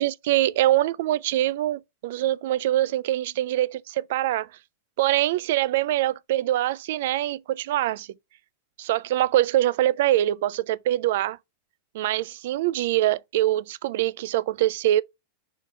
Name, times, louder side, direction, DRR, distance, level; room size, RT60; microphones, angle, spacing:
voice 1, 0.0-4.5 5.0-8.1 8.8-11.4 11.9-15.0, right 14 dB, 55° right, 0.3 m, -24 dB
5.6 x 4.0 x 4.5 m
figure-of-eight pair, 90°, 0 cm